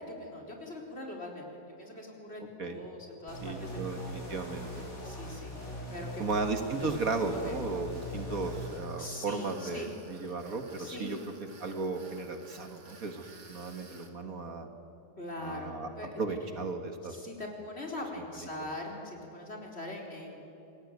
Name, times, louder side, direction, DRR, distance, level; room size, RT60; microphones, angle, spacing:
voice 1, 0.1-4.2 5.0-5.5 5.9-6.2 6.6-7.0 7.3-7.5 9.0-9.9 10.2-10.3 10.8-11.2 13.2-13.3 15.2-16.2 17.1-20.4, left 1 dB, 40° left, 0 dB, 4.6 m, -42 dB
sound 1, 3.3-8.8, equal, 55° left, 4.9 m, -41 dB
voice 2, 3.4-4.8 6.2-11.2 11.6-14.7 15.4-15.9 16.2-17.2 18.4-18.5, right 3 dB, 60° right, 6 dB, 2.1 m, -35 dB
Tools, 4.6-14.1, right 4 dB, 80° right, 3.0 m, -56 dB
28.5 x 20.5 x 9.4 m, 3.0 s
omnidirectional pair, 1.7 m